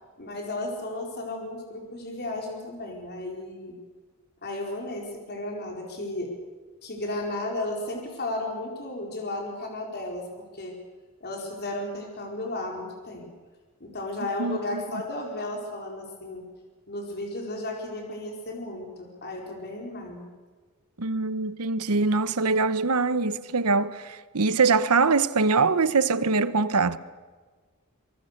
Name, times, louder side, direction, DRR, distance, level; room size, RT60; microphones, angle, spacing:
voice 1, 0.2-3.8 4.4-6.3 6.8-10.8 11.2-13.3 13.8-16.4 16.9-20.3, left 1 dB, 45° left, 4.4 m, -34 dB
voice 2, 14.4-14.8 21.0-27.0, right 4 dB, 90° right, 1.0 m, -23 dB
25.0 x 23.5 x 6.7 m
head